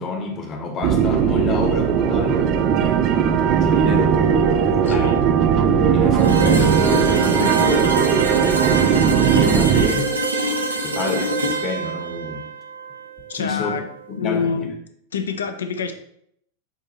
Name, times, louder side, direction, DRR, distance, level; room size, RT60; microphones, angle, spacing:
voice 1, 0.0-4.2 4.7-5.1 5.9-10.1 10.8-12.4 13.4-13.8 14.1-14.6, left 4 dB, 30° left, 1.0 m, -29 dB
sound 1, 0.8-9.9, right 8 dB, 35° right, 0.4 m, -18 dB
voice 2, 4.8-5.6 13.3-13.8 14.2-14.7 15.1-15.9, left 6 dB, 65° left, 0.5 m, -27 dB
sound 2, 6.2-14.0, right 2 dB, 85° right, 0.7 m, -25 dB
7.2 x 2.7 x 2.7 m
figure-of-eight pair, 90°, 0 cm